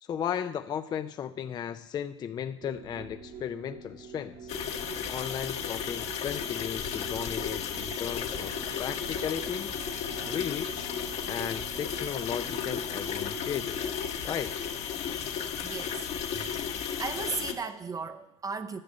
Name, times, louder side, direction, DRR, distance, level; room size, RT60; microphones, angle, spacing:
voice 1, 0.0-4.5 5.1-9.7 10.2-11.0 11.3-14.0 14.2-14.6, left 8 dB, 30° left, 0.4 m, -35 dB
sound 1, 2.6-13.9, right 6 dB, 55° right, 1.5 m, -46 dB
sound 2, 4.5-17.5, left 7 dB, 45° left, 1.1 m, -34 dB
voice 2, 15.6-16.7 17.0-18.8, right 5 dB, 25° right, 0.6 m, -36 dB
9.7 x 6.0 x 8.6 m
hypercardioid pair, 95°, 15 cm